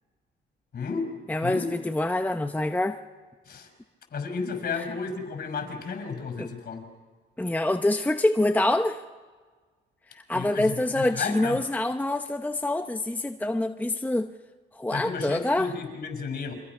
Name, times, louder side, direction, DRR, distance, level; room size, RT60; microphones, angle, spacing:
voice 1, 0.7-1.1 1.4-1.7 3.5-3.7 4.1-6.8 10.3-11.6 14.9-16.5, left 5 dB, 50° left, 7 dB, 5.6 m, -33 dB
voice 2, 1.3-3.0 4.8-4.9 6.4-6.5 7.4-9.0 10.1-14.3 14.8-15.7, left 1 dB, 10° left, 7 dB, 0.8 m, -26 dB
29.5 x 24.5 x 6.0 m, 1.5 s
cardioid pair, 90°, 20 cm